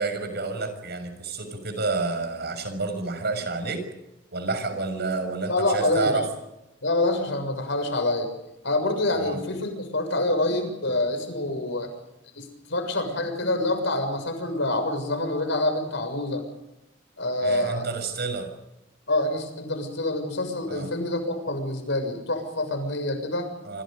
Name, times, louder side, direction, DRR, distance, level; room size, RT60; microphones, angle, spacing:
voice 1, 0.0-3.8 4.3-6.3 9.1-9.4 17.4-18.5 20.7-20.9 23.6-23.8, right 3 dB, 55° right, 8 dB, 6.5 m, -29 dB
voice 2, 5.5-6.1 6.8-8.3 8.6-11.9 12.4-16.4 17.2-17.9 19.1-23.5, left 2 dB, 65° left, 7 dB, 6.8 m, -26 dB
27.5 x 26.0 x 5.3 m, 0.90 s
head